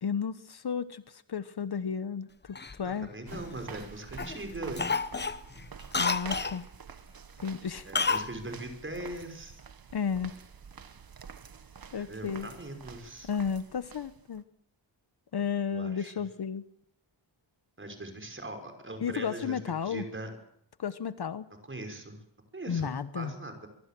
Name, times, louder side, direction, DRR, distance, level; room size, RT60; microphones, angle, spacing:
voice 1, 0.0-3.1 6.0-6.7 7.4-7.9 9.9-10.3 11.9-12.5 13.2-14.4 15.3-16.6 19.0-20.0 20.8-21.5 22.7-23.3, left 7 dB, 60° left, 13 dB, 1.2 m, -33 dB
Cough, 2.6-3.8 4.2-4.4 4.8-6.6 7.9-8.3 8.6-8.7, left 4 dB, 25° left, 1.0 m, -30 dB
voice 2, 3.0-5.0 7.8-9.6 12.0-13.3 15.7-16.1 17.8-20.3 21.7-22.2 22.5-23.7, right 2 dB, 25° right, 5 dB, 5.8 m, -40 dB
sound 1, 3.3-14.4, right 6 dB, 50° right, 1.5 m, -48 dB
24.0 x 23.5 x 7.7 m, 0.74 s
wide cardioid pair, 120°, 44 cm